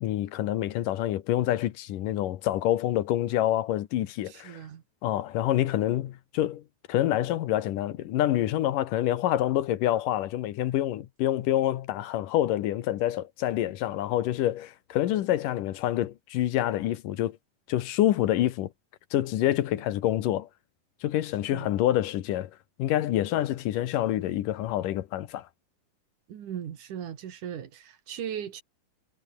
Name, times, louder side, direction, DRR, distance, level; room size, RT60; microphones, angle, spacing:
voice 1, 0.0-4.6 5.0-6.6 6.9-17.4 17.7-18.7 19.1-20.5 21.0-22.5 22.8-25.5, left 13 dB, 80° left, 2.8 m, -27 dB
voice 2, 4.3-4.8 21.5-21.7 26.3-28.6, right 9 dB, 70° right, 3.4 m, -38 dB
omnidirectional pair, 3.8 m